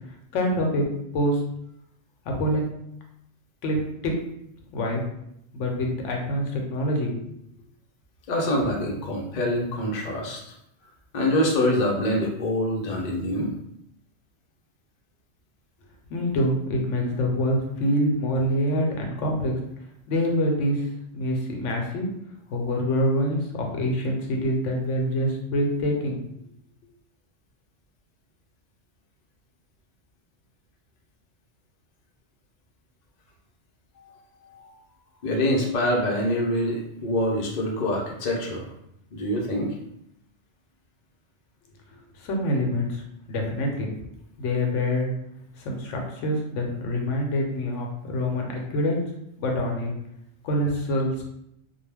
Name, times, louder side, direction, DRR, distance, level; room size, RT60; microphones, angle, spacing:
voice 1, 0.3-0.8 1.1-1.4 2.3-2.6 3.6-3.8 4.0-4.1 4.7-5.0 5.5-7.3 16.1-19.5 20.1-20.9 21.1-22.1 22.5-26.2 42.1-43.0 43.3-43.9 44.4-45.1 45.6-49.0 49.4-49.9 50.4-51.2, equal, 80° left, 1 dB, 0.9 m, -25 dB
voice 2, 8.3-10.4 11.1-13.5 34.0-34.1 34.5-34.8 35.2-38.7 39.1-39.7, left 1 dB, 50° left, -1 dB, 0.6 m, -25 dB
2.3 x 2.1 x 3.3 m, 0.78 s
omnidirectional pair, 1.3 m